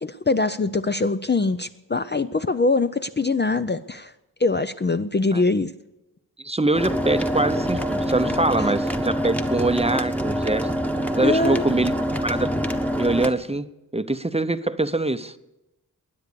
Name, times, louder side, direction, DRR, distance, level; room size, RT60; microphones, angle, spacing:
voice 1, 0.0-4.1 4.4-5.7 11.2-11.6, left 3 dB, 30° left, 10 dB, 0.5 m, -23 dB
voice 2, 6.4-10.7 11.2-11.9 12.2-12.5 12.9-13.7 13.9-15.4, right 2 dB, 15° right, 11 dB, 0.7 m, -23 dB
sound 1, 6.7-13.3, equal, 5° left, 1.1 m, -25 dB
21.0 x 9.6 x 6.8 m, 0.97 s
wide cardioid pair, 75°, 37 cm